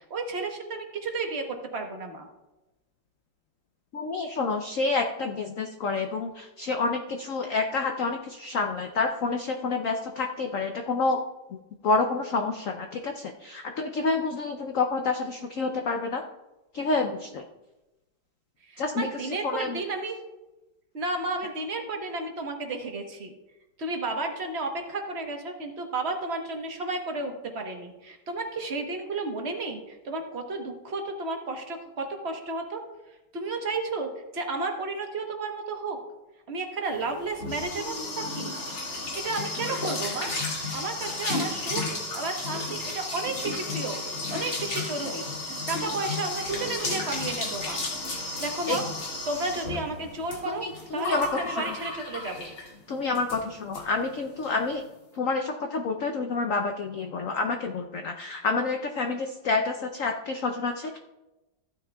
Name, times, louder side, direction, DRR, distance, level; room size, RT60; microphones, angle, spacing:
voice 1, 0.0-2.3 18.6-20.1 20.9-23.3 23.8-32.8 33.3-36.0 36.5-38.5 39.1-40.3 40.7-44.0 44.3-47.8 48.4-48.8 49.3-50.6 50.9-52.5, right 3 dB, 40° right, 3 dB, 1.1 m, -32 dB
voice 2, 3.9-11.2 11.5-11.6 11.8-16.2 16.7-17.4 18.8-19.1 19.4-19.8 48.7-48.8 50.5-51.8 52.9-54.8 55.1-61.0, left 3 dB, 85° left, 4 dB, 0.7 m, -28 dB
sound 1, 37.0-52.8 53.2-53.4 53.7-53.8 54.1-54.5, left 2 dB, 70° left, 3.0 m, -33 dB
15.0 x 9.3 x 2.3 m, 1.0 s
omnidirectional pair, 2.2 m